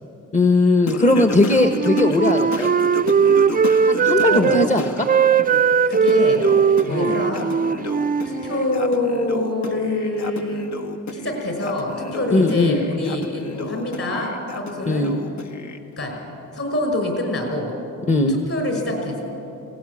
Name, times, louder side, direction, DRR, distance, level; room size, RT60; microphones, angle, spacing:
voice 1, 0.3-2.7 3.8-5.1 6.9-7.1 12.3-12.8 14.8-15.1 18.1-18.3, left 2 dB, 25° left, 5 dB, 1.1 m, -18 dB
Singing, 0.9-5.0 5.4-15.8, left 4 dB, 65° left, 1.5 m, -32 dB
Wind instrument woodwind instrument, 1.4-4.7 5.0-8.8, right 6 dB, 30° right, 0.5 m, -19 dB
voice 2, 5.9-6.5 6.8-7.4 8.2-10.7 11.1-15.1 16.0-16.2 16.5-17.7 18.3-19.2, left 2 dB, 45° left, 3 dB, 5.7 m, -25 dB
18.0 x 17.5 x 8.5 m, 2.9 s
cardioid pair, 90°, 31 cm